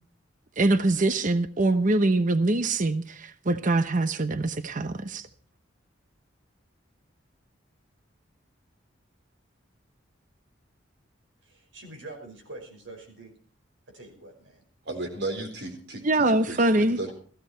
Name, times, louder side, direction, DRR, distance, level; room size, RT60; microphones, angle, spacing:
voice 1, 0.6-5.3 16.0-17.0, right 2 dB, 45° right, 0.9 m, -24 dB
voice 2, 11.4-13.3 13.9-14.6 17.1-17.2, right 2 dB, 80° right, 5.5 m, -45 dB
voice 3, 14.9-17.1, right 2 dB, 60° right, 3.9 m, -35 dB
16.5 x 15.0 x 4.5 m
head